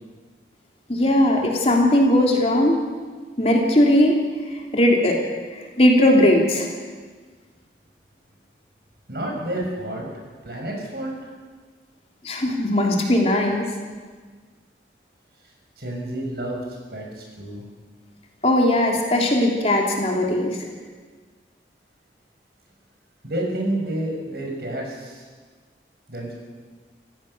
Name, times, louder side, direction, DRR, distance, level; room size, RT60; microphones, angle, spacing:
voice 1, 0.9-2.8 3.4-4.1 4.7-5.2 5.8-6.7 12.2-13.7 18.4-20.6, left 1 dB, 35° left, 0 dB, 3.0 m, -18 dB
voice 2, 9.1-10.1 10.4-11.1 15.8-16.6 16.9-17.6 23.2-25.2 26.1-26.3, right 1 dB, 60° right, 0 dB, 6.3 m, -29 dB
28.0 x 15.0 x 6.8 m, 1.5 s
head